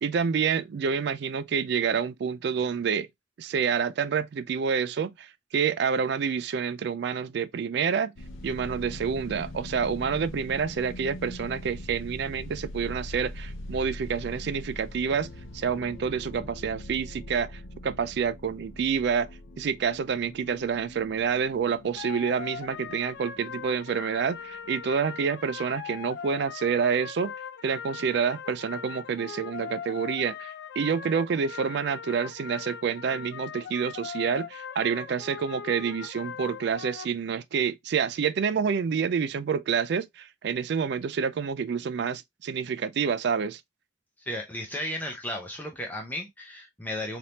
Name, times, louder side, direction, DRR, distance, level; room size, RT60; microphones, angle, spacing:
voice 1, 0.0-3.1 3.4-8.1 8.4-19.3 19.6-27.3 27.6-43.6, right 6 dB, 55° right, 0.3 m, -28 dB
sound 1, 8.2-24.9, left 1 dB, 85° left, 0.7 m, -42 dB
sound 2, 21.9-37.0, left 7 dB, 55° left, 0.3 m, -40 dB
voice 2, 44.3-47.2, left 1 dB, 10° left, 0.6 m, -34 dB
3.4 x 2.8 x 2.8 m
head